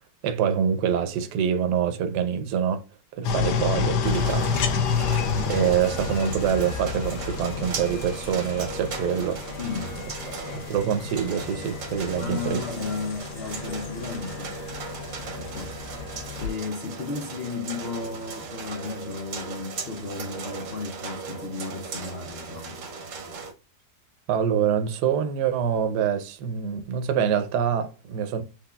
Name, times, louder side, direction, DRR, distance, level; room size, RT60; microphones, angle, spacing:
voice 1, 0.2-2.8 3.1-4.5 5.0-5.2 5.5-9.4 10.5-12.6 24.3-28.4, right 8 dB, 85° right, 1.2 m, -25 dB
sound 1, 3.2-16.5, left 6 dB, 85° left, 1.3 m, -30 dB
sound 2, 4.0-23.5, right 5 dB, 55° right, 1.1 m, -37 dB
voice 2, 9.6-10.1 12.2-14.5 15.3-22.8, left 4 dB, 60° left, 0.6 m, -34 dB
5.9 x 3.5 x 2.2 m
omnidirectional pair, 1.7 m